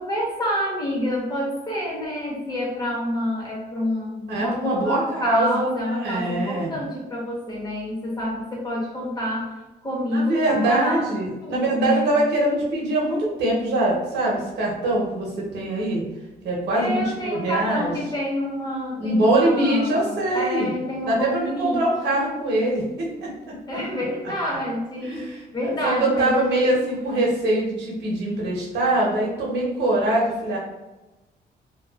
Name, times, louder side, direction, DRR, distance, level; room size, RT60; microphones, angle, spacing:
voice 1, 0.0-9.5 9.8-11.1 11.4-12.1 16.7-21.9 23.7-26.7, left 1 dB, 25° left, -4 dB, 1.1 m, -28 dB
voice 2, 4.3-6.7 10.1-16.0 16.4-17.9 19.0-20.7 21.0-23.8 25.0-30.6, right 1 dB, 85° right, -3 dB, 1.1 m, -23 dB
3.0 x 2.4 x 2.4 m, 1.1 s
cardioid pair, 105°, 17 cm